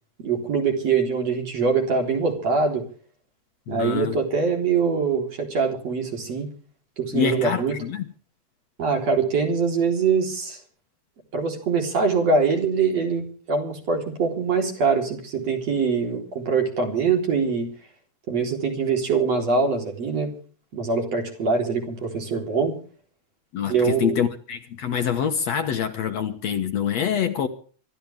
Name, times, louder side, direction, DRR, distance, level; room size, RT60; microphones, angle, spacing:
voice 1, 0.2-2.8 3.7-6.5 7.0-7.8 8.8-10.6 11.3-17.7 18.3-20.3 20.7-22.7 23.7-24.2, right 5 dB, 50° right, 4.8 m, -23 dB
voice 2, 3.7-4.2 7.1-8.1 23.5-27.5, left 8 dB, 60° left, 2.3 m, -25 dB
25.5 x 13.5 x 3.5 m
omnidirectional pair, 3.7 m